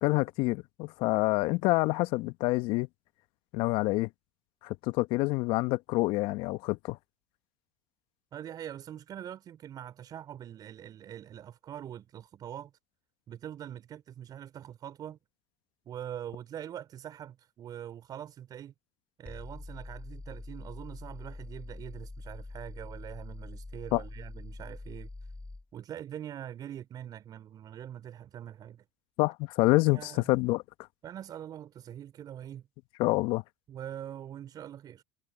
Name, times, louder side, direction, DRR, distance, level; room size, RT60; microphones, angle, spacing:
voice 1, 0.0-2.9 3.5-4.1 4.6-7.0 23.9-24.0 29.2-30.6 33.0-33.4, left 22 dB, 60° left, 1.4 m, -27 dB
voice 2, 8.3-12.7 13.3-15.2 15.9-18.7 19.2-25.1 25.7-28.9 29.9-30.2 31.0-32.7 33.7-35.0, right 10 dB, 45° right, 5.5 m, -43 dB
sound 1, 19.3-25.7, left 2 dB, 10° left, 4.6 m, -44 dB
hypercardioid pair, 75°, 9 cm